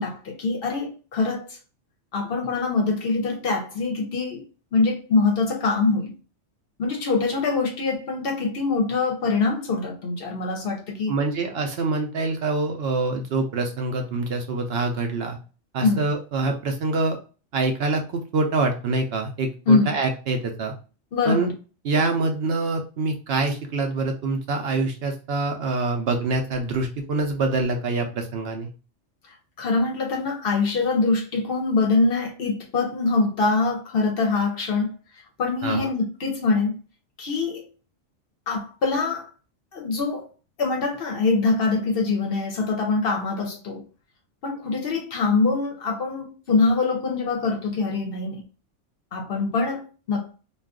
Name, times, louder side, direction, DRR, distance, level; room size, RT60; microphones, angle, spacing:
voice 1, 0.0-1.6 2.1-4.4 4.7-6.1 6.8-11.1 15.8-16.0 19.7-20.0 21.1-21.5 29.6-34.9 35.4-36.8 37.2-37.6 38.5-39.3 39.7-40.3 40.6-43.9 44.4-48.4 49.1-50.4, left 3 dB, 60° left, 0.7 m, -24 dB
voice 2, 11.1-15.4 15.7-17.2 17.5-20.7 21.3-21.5 21.8-28.7 35.6-35.9, right 3 dB, 65° right, 0.7 m, -25 dB
2.4 x 2.3 x 3.5 m
omnidirectional pair, 1.3 m